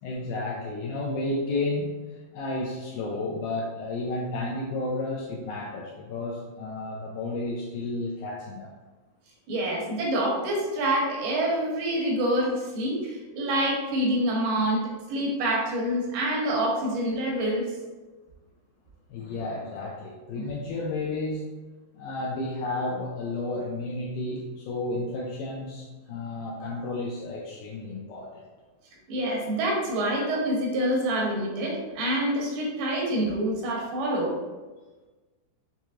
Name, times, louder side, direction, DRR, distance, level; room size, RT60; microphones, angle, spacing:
voice 1, 0.0-8.7 19.1-21.5 22.0-28.4, left 2 dB, 85° left, -3 dB, 2.1 m, -32 dB
voice 2, 9.5-14.8 15.1-17.7 20.4-20.5 29.1-34.3, right 1 dB, 80° right, -2 dB, 2.8 m, -26 dB
6.7 x 3.0 x 2.4 m, 1.2 s
omnidirectional pair, 4.6 m